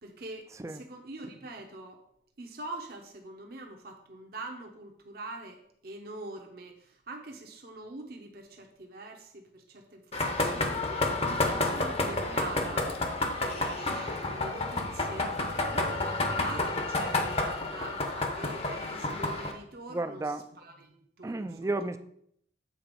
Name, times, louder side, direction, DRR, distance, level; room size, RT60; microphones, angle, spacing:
voice 1, 0.0-2.0 2.4-21.7, right 2 dB, 55° right, 2 dB, 0.9 m, -44 dB
voice 2, 0.5-0.8 19.9-20.5 21.2-22.0, right 2 dB, 15° right, 11 dB, 0.4 m, -33 dB
sound 1, 10.1-19.5, left 2 dB, 35° left, 0.8 m, -30 dB
7.8 x 4.0 x 5.2 m, 0.69 s
head